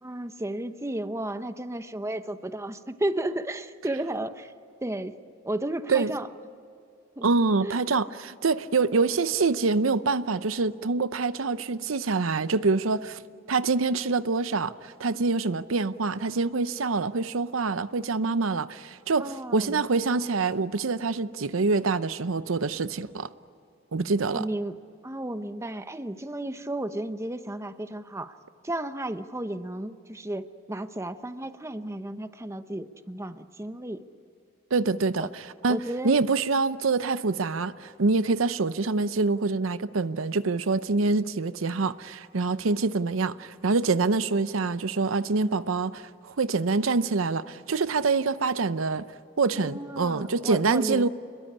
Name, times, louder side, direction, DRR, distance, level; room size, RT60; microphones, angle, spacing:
voice 1, 0.0-4.5 4.8-5.2 5.4-6.3 7.2-7.3 7.6-7.8 19.2-19.9 24.3-24.8 25.0-28.4 28.6-34.1 35.2-35.3 35.7-36.2 49.6-51.1, right 1 dB, 15° right, 0.9 m, -33 dB
voice 2, 7.2-13.2 13.5-23.3 23.9-24.5 34.7-35.8 36.0-49.1 49.4-51.1, right 4 dB, 85° right, 0.7 m, -25 dB
27.5 x 22.0 x 10.0 m
head